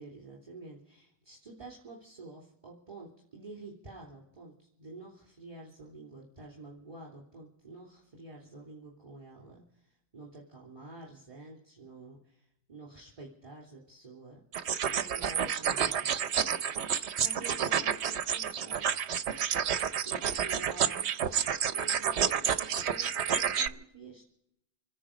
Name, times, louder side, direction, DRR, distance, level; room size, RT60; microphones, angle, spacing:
voice 1, 0.0-14.4 14.8-16.1 17.2-18.9 20.0-21.1 21.7-24.2, right 3 dB, 30° right, -4 dB, 3.0 m, -49 dB
sound 1, 14.5-23.7, right 8 dB, 75° right, 1.0 m, -30 dB
26.5 x 10.0 x 5.1 m, 0.80 s
omnidirectional pair, 1.1 m